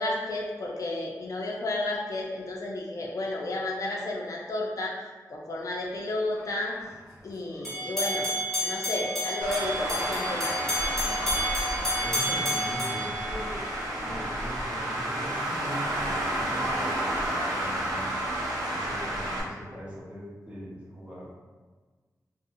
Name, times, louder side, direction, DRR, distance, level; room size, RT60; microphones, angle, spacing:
voice 1, 0.0-4.9 5.3-6.7 7.2-8.3 8.6-10.8, left 2 dB, 55° left, -2 dB, 0.4 m, -32 dB
sound 1, 7.6-13.9, equal, 5° left, 1.1 m, -30 dB
Traffic noise roadway noise, 9.4-19.4, right 1 dB, 75° right, 0.6 m, -31 dB
voice 2, 12.0-13.6 14.0-18.2 18.7-21.3, equal, 20° right, -6 dB, 0.8 m, -40 dB
2.6 x 2.0 x 2.6 m, 1.4 s
wide cardioid pair, 85°, 7 cm